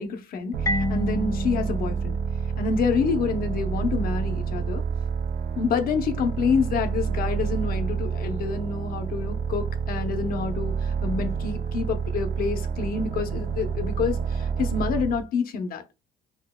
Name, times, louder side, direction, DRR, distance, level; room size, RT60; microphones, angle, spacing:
voice 1, 0.0-2.2 2.6-4.8 5.6-15.8, left 5 dB, 60° left, 0.7 m, -27 dB
sound 1, 0.5-15.2, right 6 dB, 60° right, 0.7 m, -29 dB
Marimba xylophone, 0.7-3.3, left 3 dB, 20° left, 0.4 m, -31 dB
4.3 x 2.7 x 2.2 m
cardioid pair, 110°, 17 cm